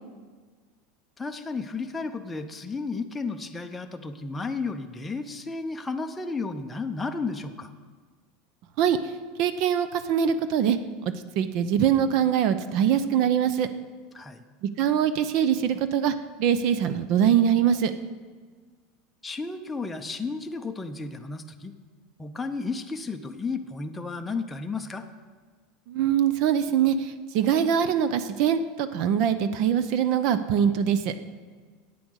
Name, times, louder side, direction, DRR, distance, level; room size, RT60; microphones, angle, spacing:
voice 1, 1.2-7.7 14.1-14.4 19.2-21.7 22.2-25.1, left 4 dB, 10° left, 5 dB, 0.6 m, -33 dB
voice 2, 8.8-9.1 9.4-10.8 11.0-13.7 14.6-17.9 25.9-31.1, right 9 dB, 50° right, 12 dB, 0.6 m, -23 dB
10.0 x 8.6 x 6.3 m, 1.5 s
supercardioid pair, 150°, 0 cm